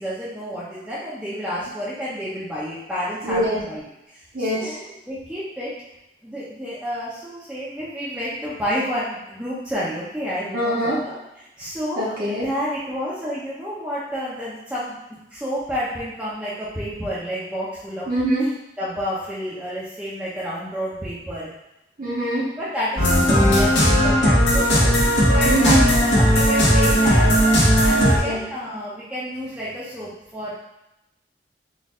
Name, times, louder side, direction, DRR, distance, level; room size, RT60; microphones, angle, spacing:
voice 1, 0.0-5.8 6.2-15.0 15.3-18.1 18.8-21.5 22.6-24.9 25.3-27.3 27.8-30.5, equal, 5° right, -10 dB, 0.7 m, -30 dB
voice 2, 3.2-3.6 4.3-4.8 10.5-11.0 12.0-12.5 18.1-18.5 22.0-22.4 25.4-25.8 28.0-28.4, right 1 dB, 50° right, -6 dB, 0.9 m, -23 dB
sound 1, 23.0-28.2, equal, 80° left, 1.2 m, -16 dB
4.1 x 2.6 x 3.7 m, 0.91 s
head